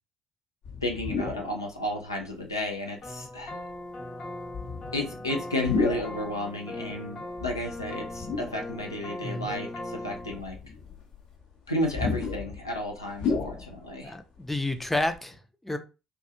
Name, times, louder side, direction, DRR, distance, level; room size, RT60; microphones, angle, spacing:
sound 1, 0.6-1.6 2.2-2.3 3.4-3.7 4.5-6.2 7.3-8.9 9.4-9.5 10.1-14.1 14.4-14.5 14.7-15.2, left 4 dB, 60° left, 0.7 m, -33 dB
voice 1, 0.8-3.6 4.9-10.6 11.7-14.1, left 1 dB, 90° left, 0.4 m, -32 dB
sound 2, 3.0-10.4, left 1 dB, 40° left, 1.1 m, -39 dB
voice 2, 9.2-9.5 14.0-15.8, left 2 dB, 10° left, 0.4 m, -30 dB
2.4 x 2.2 x 2.7 m
figure-of-eight pair, 50°, 2 cm